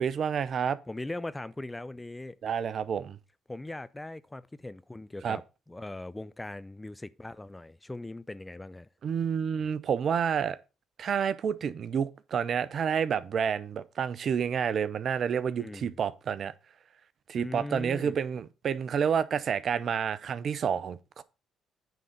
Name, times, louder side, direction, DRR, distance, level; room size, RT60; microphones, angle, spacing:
voice 1, 0.0-0.8 2.4-3.2 5.2-5.4 9.0-10.6 11.0-16.5 17.3-21.2, right 7 dB, 55° right, 0.6 m, -29 dB
voice 2, 0.9-2.4 3.5-5.4 5.7-8.9 15.6-16.0 17.3-18.2, left 2 dB, 15° left, 0.6 m, -40 dB
9.3 x 3.8 x 6.6 m
hypercardioid pair, 55°, 0 cm